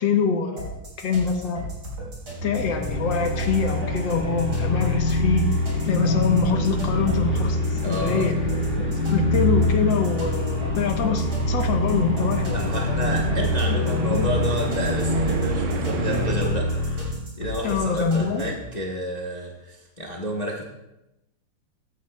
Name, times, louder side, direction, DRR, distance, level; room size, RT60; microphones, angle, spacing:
voice 1, 0.0-1.7 2.4-5.5 5.9-8.3 8.9-12.6 13.3-14.3 17.6-18.5, left 5 dB, 80° left, 5 dB, 1.8 m, -25 dB
sound 1, 0.6-18.7, equal, 45° right, 4.3 m, -35 dB
sound 2, 2.4-17.2, left 1 dB, 5° left, 1.2 m, -25 dB
sound 3, 6.8-16.4, right 5 dB, 75° right, 1.4 m, -34 dB
voice 2, 7.8-8.3 12.5-16.7 17.4-20.6, equal, 30° left, -2 dB, 0.8 m, -30 dB
15.0 x 9.6 x 2.3 m, 0.93 s
omnidirectional pair, 2.0 m